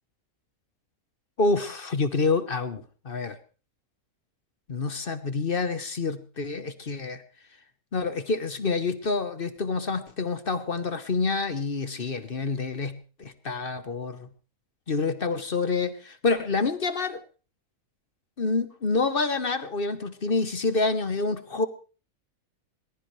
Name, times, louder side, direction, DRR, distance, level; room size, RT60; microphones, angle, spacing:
voice 1, 1.4-3.4 4.7-7.2 7.9-14.3 14.9-17.2 18.4-21.7, left 3 dB, 45° left, 11 dB, 1.2 m, -27 dB
21.5 x 20.5 x 3.2 m, 0.37 s
omnidirectional pair, 1.5 m